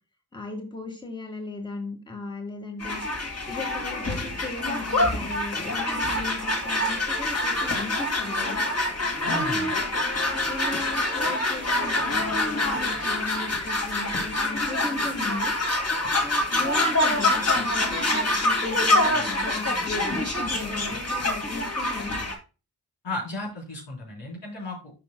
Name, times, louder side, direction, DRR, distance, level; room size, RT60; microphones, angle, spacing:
voice 1, 0.3-3.0 3.4-8.6 9.3-9.8 10.3-15.5 16.2-19.7 20.1-22.1, left 2 dB, 10° left, 3 dB, 1.6 m, -36 dB
sound 1, 2.8-22.3, left 2 dB, 35° left, 2.1 m, -26 dB
voice 2, 9.3-9.7 23.0-24.9, left 2 dB, 85° left, -4 dB, 3.9 m, -34 dB
11.5 x 5.2 x 2.2 m, 0.31 s
cardioid pair, 60°, 42 cm